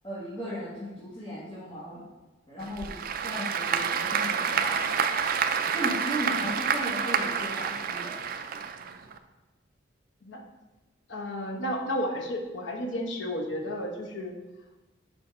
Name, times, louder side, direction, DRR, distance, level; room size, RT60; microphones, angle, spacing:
voice 1, 0.0-2.0 2.5-2.9 3.2-4.9 5.7-8.2, equal, 25° left, -9 dB, 1.5 m, -36 dB
Applause / Crowd, 2.6-9.2, right 6 dB, 50° right, 0.4 m, -28 dB
voice 2, 11.1-14.3, equal, 75° left, 2 dB, 1.0 m, -32 dB
6.2 x 5.0 x 4.3 m, 1.1 s
head